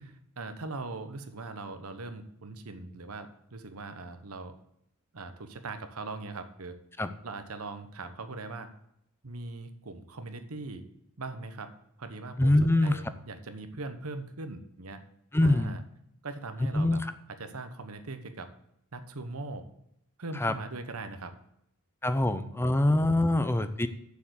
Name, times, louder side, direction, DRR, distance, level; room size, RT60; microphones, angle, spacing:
voice 1, 0.4-4.5 5.1-6.8 7.2-8.7 9.2-10.8 11.2-11.7 12.0-15.0 15.4-15.8 16.2-17.0 17.4-18.5 18.9-19.7 20.2-21.3, right 3 dB, 90° right, 9 dB, 1.1 m, -40 dB
voice 2, 12.4-13.0 15.3-15.8 16.7-17.1 20.3-20.6 22.0-23.9, left 1 dB, 10° left, 11 dB, 0.6 m, -24 dB
7.1 x 6.9 x 7.8 m, 0.77 s
head